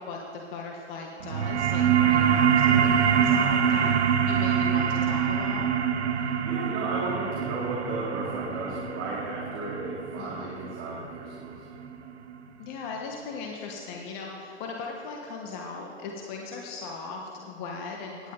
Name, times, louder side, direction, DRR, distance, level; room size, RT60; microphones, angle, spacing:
voice 1, 0.0-3.9 4.3-5.7 10.2-10.5 12.6-18.3, left 4 dB, 45° left, 0 dB, 1.6 m, -38 dB
sound 1, 1.2-12.3, right 8 dB, 80° right, 1.0 m, -25 dB
voice 2, 6.4-11.7, right 2 dB, 40° right, -4 dB, 2.9 m, -34 dB
18.0 x 10.5 x 4.0 m, 2.7 s
hypercardioid pair, 110°, 34 cm